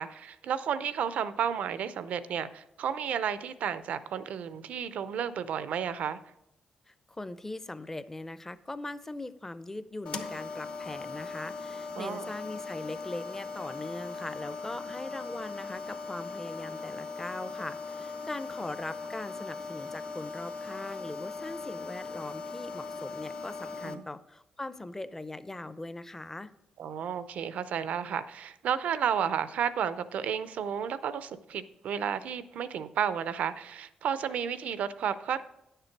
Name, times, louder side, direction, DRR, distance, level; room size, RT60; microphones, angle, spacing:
voice 1, 0.0-6.2 12.0-12.3 23.8-24.0 26.8-35.4, right 8 dB, 80° right, 14 dB, 0.5 m, -32 dB
voice 2, 6.9-26.5, left 2 dB, 15° left, 14 dB, 0.5 m, -40 dB
sound 1, 10.1-24.0, left 4 dB, 60° left, 1.0 m, -39 dB
9.8 x 6.7 x 4.5 m, 0.84 s
cardioid pair, 85°, 2 cm